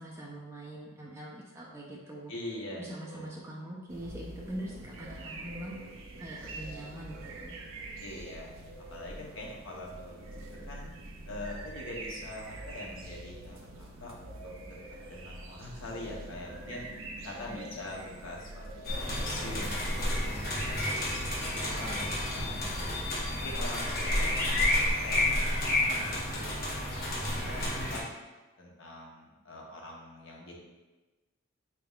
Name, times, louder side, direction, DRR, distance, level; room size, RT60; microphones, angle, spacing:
voice 1, 0.0-2.3 2.7-5.8 6.2-7.5 17.5-17.6, right 1 dB, 15° right, -5 dB, 0.4 m, -43 dB
voice 2, 2.3-3.4 8.0-8.5 8.9-10.2 10.7-10.9 11.3-14.3 14.6-14.8 15.0-16.8 17.2-23.0 23.3-27.0 27.4-28.1 28.6-30.6, left 1 dB, 75° left, -2 dB, 0.8 m, -44 dB
sound 1, 3.9-22.2, right 2 dB, 85° right, 0.5 m, -45 dB
sound 2, 18.8-28.0, left 1 dB, 45° left, 0.9 m, -30 dB
4.0 x 3.5 x 2.3 m, 1.2 s
head